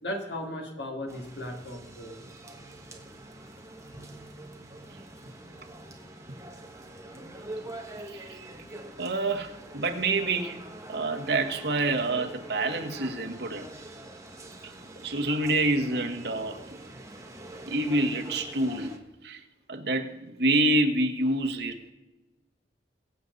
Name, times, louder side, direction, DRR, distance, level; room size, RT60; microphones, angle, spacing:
voice 1, 0.0-2.2, left 1 dB, 65° left, 2.5 m, -36 dB
sound 1, 1.1-19.0, right 1 dB, 15° right, 1.3 m, -45 dB
voice 2, 8.0-8.4 9.0-10.6 10.9-13.7 14.6-14.7 15.0-16.6 17.7-19.0 19.2-19.4 19.7-21.9, right 2 dB, 60° right, 1.5 m, -27 dB
22.5 x 7.9 x 4.1 m
head